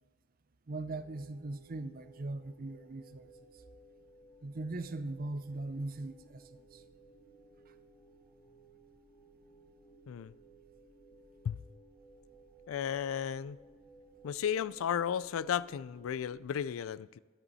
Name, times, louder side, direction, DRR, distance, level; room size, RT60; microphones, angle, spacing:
voice 1, 0.7-3.3 4.4-6.8, right 2 dB, 45° right, 11 dB, 0.6 m, -40 dB
sound 1, 0.9-16.6, right 2 dB, 15° left, 3.0 m, -59 dB
voice 2, 12.7-13.6 14.2-17.2, left 8 dB, 85° left, 19 dB, 0.3 m, -34 dB
11.0 x 10.0 x 4.1 m, 1.5 s
head